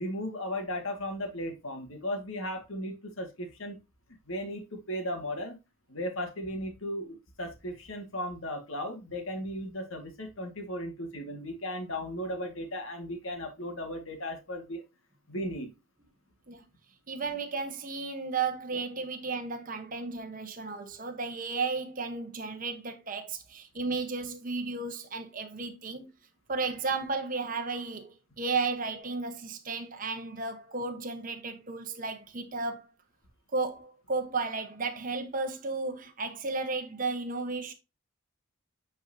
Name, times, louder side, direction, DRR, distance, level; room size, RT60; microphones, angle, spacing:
voice 1, 0.0-3.8 4.3-5.6 5.9-14.8 15.3-15.7, equal, 65° left, 2.0 m, -36 dB
voice 2, 17.1-26.1 26.5-32.9 33.5-37.7, right 4 dB, 40° right, 1.1 m, -34 dB
8.5 x 4.5 x 2.7 m
head